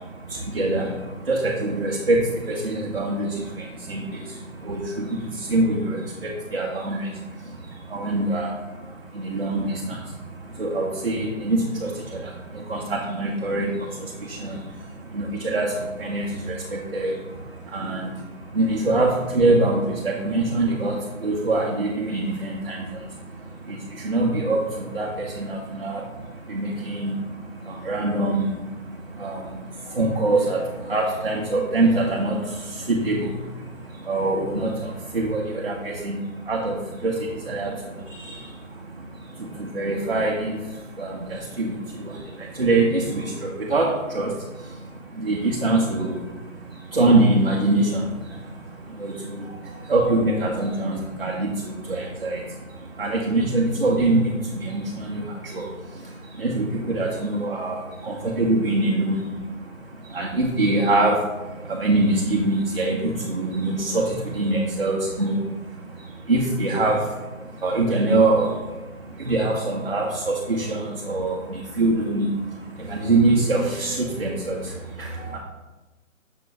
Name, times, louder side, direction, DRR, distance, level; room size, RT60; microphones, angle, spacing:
voice 1, 0.0-75.4, right 2 dB, 45° right, -2 dB, 0.5 m, -25 dB
5.8 x 2.4 x 3.8 m, 1.2 s
hypercardioid pair, 175°, 41 cm